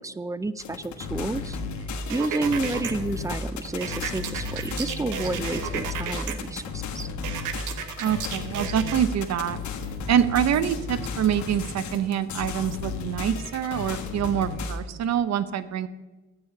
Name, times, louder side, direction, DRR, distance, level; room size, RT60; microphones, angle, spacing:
voice 1, 0.0-1.6 2.1-7.1, right 2 dB, 10° right, 15 dB, 0.5 m, -30 dB
sound 1, 0.6-14.8, left 4 dB, 70° left, 1.4 m, -34 dB
sound 2, 2.1-2.9 3.8-6.3 7.2-9.0, right 8 dB, 80° right, 1.0 m, -33 dB
voice 2, 8.0-9.6 10.1-15.9, right 9 dB, 60° right, 14 dB, 0.8 m, -25 dB
9.7 x 8.5 x 5.8 m, 1.2 s
cardioid pair, 90°, 30 cm